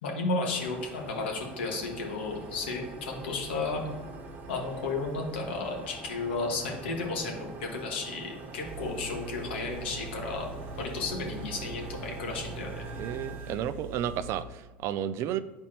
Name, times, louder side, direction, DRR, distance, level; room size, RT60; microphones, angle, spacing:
voice 1, 0.0-3.9 4.5-10.5 10.8-12.7, left 3 dB, 80° left, 0 dB, 1.6 m, -33 dB
sound 1, 0.5-13.6, right 3 dB, 35° right, 1.2 m, -43 dB
Engine, 8.6-14.4, right 4 dB, 70° right, 1.1 m, -43 dB
voice 2, 13.0-15.4, right 10 dB, 50° right, 14 dB, 0.4 m, -32 dB
8.9 x 4.3 x 2.9 m, 1.2 s
hypercardioid pair, 95°, 6 cm